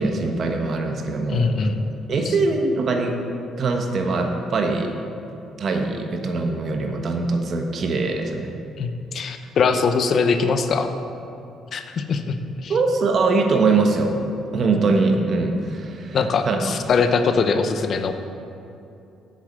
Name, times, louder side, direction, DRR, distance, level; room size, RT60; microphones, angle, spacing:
voice 1, 0.0-1.7 2.1-3.2 3.6-4.9 5.6-8.5 12.7-14.2 14.5-16.2 16.4-16.8, right 3 dB, 55° right, 4 dB, 1.3 m, -22 dB
voice 2, 1.3-1.7 2.3-2.4 8.8-10.9 11.7-12.7 16.1-18.1, left 5 dB, 55° left, 8 dB, 0.8 m, -22 dB
7.9 x 7.0 x 7.6 m, 2.7 s
supercardioid pair, 75°, 0 cm